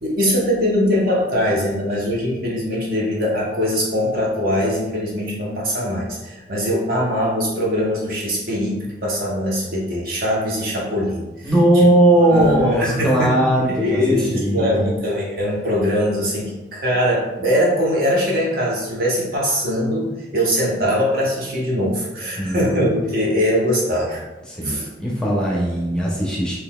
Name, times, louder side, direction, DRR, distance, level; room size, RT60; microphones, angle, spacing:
voice 1, 0.0-11.5 11.7-11.9 12.3-13.4 13.7-24.2 24.6-24.9, equal, 55° right, -4 dB, 0.9 m, -22 dB
voice 2, 11.4-14.9 16.2-16.3 22.4-22.8 24.5-26.6, right 1 dB, 5° left, -4 dB, 0.6 m, -18 dB
3.9 x 2.9 x 2.2 m, 1.1 s
head